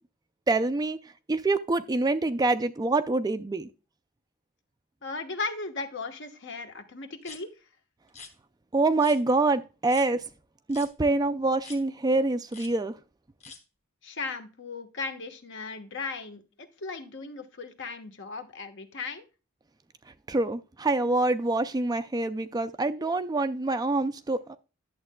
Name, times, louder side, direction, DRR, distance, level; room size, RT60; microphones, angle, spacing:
voice 1, 0.5-3.7 8.7-10.2 10.7-12.9 20.3-24.6, right 2 dB, 15° right, 0.3 m, -26 dB
voice 2, 5.0-7.5 14.0-19.2, left 4 dB, 55° left, 1.1 m, -37 dB
sound 1, 7.2-7.4 8.1-8.3 9.0-9.2 9.9-10.1 10.7-10.9 11.6-11.8 12.5-12.7 13.4-13.6, left 4 dB, 30° left, 1.2 m, -45 dB
11.0 x 7.4 x 2.2 m
head